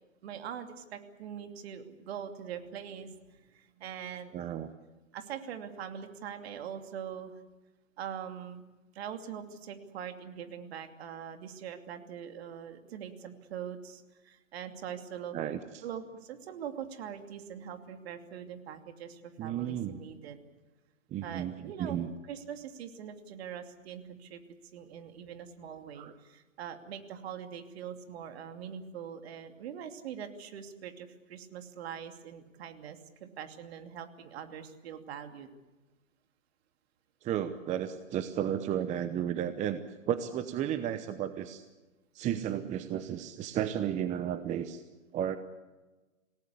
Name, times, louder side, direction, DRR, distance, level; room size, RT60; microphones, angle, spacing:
voice 1, 0.2-4.4 5.1-7.4 8.0-8.6 8.9-15.4 15.8-20.4 21.2-22.0 22.3-24.4 24.7-35.5, right 8 dB, 50° right, 6 dB, 2.7 m, -43 dB
voice 2, 4.3-4.7 15.3-15.8 19.4-20.0 21.1-22.1 26.0-26.1 37.2-39.8 40.1-41.6 42.1-44.8 45.1-45.4, right 10 dB, 20° right, 11 dB, 0.9 m, -33 dB
27.0 x 18.0 x 8.5 m, 1.2 s
figure-of-eight pair, 120°, 39 cm